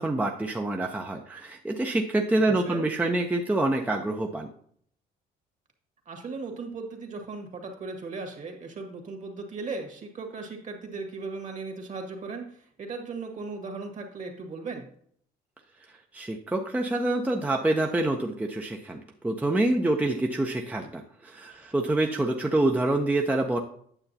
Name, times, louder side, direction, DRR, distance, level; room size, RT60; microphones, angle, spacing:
voice 1, 0.0-4.5 16.1-23.6, right 2 dB, 10° right, 2 dB, 0.6 m, -26 dB
voice 2, 2.5-2.8 6.0-14.8, right 3 dB, 45° right, 4 dB, 1.7 m, -37 dB
9.0 x 6.8 x 2.7 m, 0.63 s
cardioid pair, 110°, 17 cm